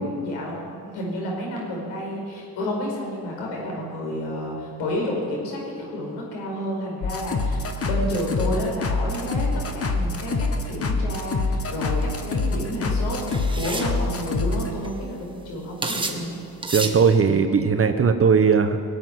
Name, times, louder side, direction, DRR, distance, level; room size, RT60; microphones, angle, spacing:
voice 1, 0.0-9.5 9.7-16.3, left 1 dB, 85° left, -1 dB, 5.2 m, -30 dB
sound 1, 7.0-14.7, left 3 dB, 35° left, 1.6 m, -25 dB
sound 2, 11.9-12.1 13.3-13.9 14.6-14.7 14.8-15.2 15.8-16.2 16.6-17.0, right 2 dB, 10° right, 1.7 m, -29 dB
voice 2, 16.7-18.8, right 6 dB, 30° right, 8 dB, 1.0 m, -18 dB
18.5 x 8.2 x 9.5 m, 2.3 s
supercardioid pair, 85°, 42 cm